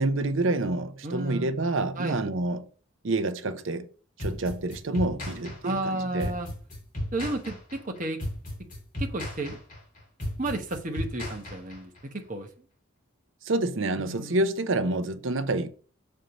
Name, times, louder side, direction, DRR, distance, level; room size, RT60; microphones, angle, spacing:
voice 1, 0.0-2.7 3.0-3.9 4.2-6.3 13.4-15.7, right 2 dB, 70° right, 0.7 m, -28 dB
voice 2, 1.0-1.5 1.9-2.2 5.6-6.5 7.1-8.2 9.0-9.6 10.4-12.5 14.0-14.4, right 2 dB, 40° right, 1.1 m, -32 dB
sound 1, 4.2-12.0, left 1 dB, 40° left, 2.9 m, -35 dB
6.5 x 4.5 x 5.2 m
head